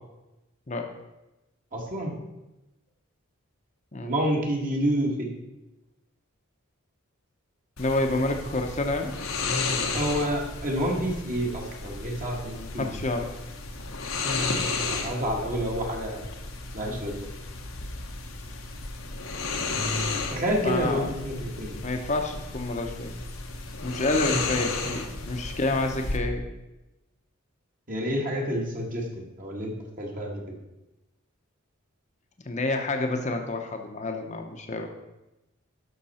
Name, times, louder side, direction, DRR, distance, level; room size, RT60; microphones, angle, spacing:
voice 1, 1.7-2.1 4.0-5.3 8.1-8.2 9.9-13.0 14.9-16.2 16.7-17.3 20.3-21.8 27.9-30.4, equal, 40° right, -1 dB, 1.8 m, -29 dB
sound 1, 7.8-26.2, left 3 dB, 85° left, 1.2 m, -33 dB
voice 2, 7.8-9.1 12.5-13.3 20.6-21.1 21.8-23.2 23.8-26.4 32.5-34.9, left 2 dB, 35° left, 4 dB, 0.9 m, -28 dB
12.0 x 5.9 x 4.3 m, 0.98 s
head